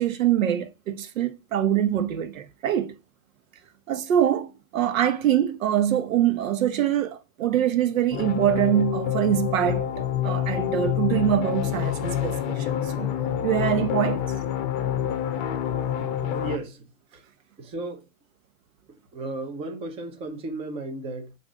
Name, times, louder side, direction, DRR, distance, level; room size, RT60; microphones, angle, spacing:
voice 1, 0.0-2.9 3.9-13.2 13.4-14.2, right 10 dB, 65° right, 1.1 m, -24 dB
sound 1, 8.1-16.6, left 10 dB, 35° left, 0.8 m, -27 dB
voice 2, 16.2-17.2 17.6-18.1 19.1-21.3, right 2 dB, 15° right, 0.7 m, -35 dB
7.2 x 2.6 x 5.0 m
hypercardioid pair, 145°, 43 cm